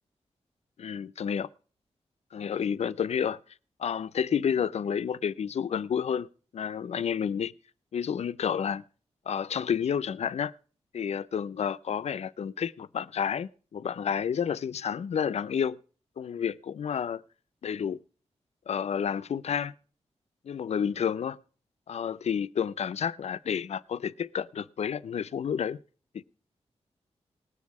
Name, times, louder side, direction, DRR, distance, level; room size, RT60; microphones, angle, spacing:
voice 1, 0.8-1.5 2.3-3.4 3.8-6.3 6.5-7.5 7.9-8.8 9.3-10.5 10.9-15.8 16.2-17.2 17.6-18.0 18.7-19.7 20.4-21.4 21.9-25.8 26.1-26.2, left 7 dB, 70° left, 0.5 m, -30 dB
19.0 x 7.4 x 4.7 m
wide cardioid pair, 145°, 12 cm